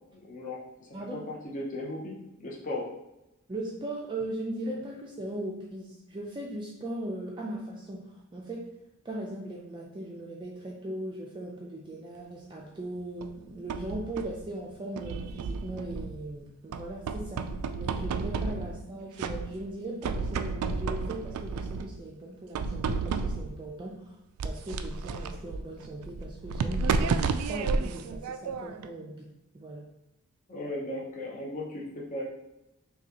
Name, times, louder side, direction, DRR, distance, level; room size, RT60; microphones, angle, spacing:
voice 1, 0.1-2.9 30.5-32.2, left 1 dB, 35° left, -4 dB, 0.7 m, -37 dB
voice 2, 3.5-8.6 9.0-17.4 17.7-24.1 24.4-29.8, right 1 dB, 20° right, -3 dB, 0.4 m, -39 dB
sound 1, 13.2-14.4 15.0-16.3 16.7-18.9 19.2-19.7 20.0-22.0 22.5-23.6 24.4-28.9, right 4 dB, 85° right, 0.3 m, -32 dB
5.9 x 2.3 x 2.8 m, 0.92 s
head